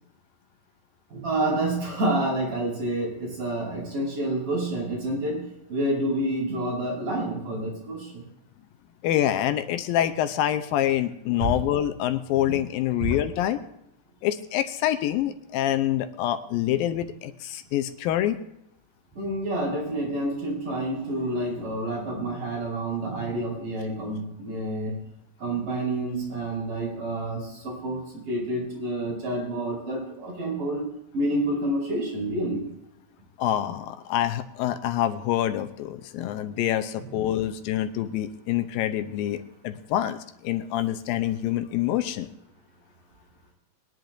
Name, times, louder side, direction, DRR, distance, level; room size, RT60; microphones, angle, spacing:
voice 1, 1.1-8.2 11.4-11.5 13.0-13.1 19.1-24.9 25.4-30.9 31.1-32.6 37.1-37.2, right 1 dB, 60° right, -4 dB, 6.5 m, -28 dB
voice 2, 9.0-13.6 14.2-18.4 33.4-42.3, left 12 dB, 80° left, 10 dB, 2.4 m, -26 dB
22.0 x 10.5 x 2.6 m, 0.81 s
omnidirectional pair, 4.2 m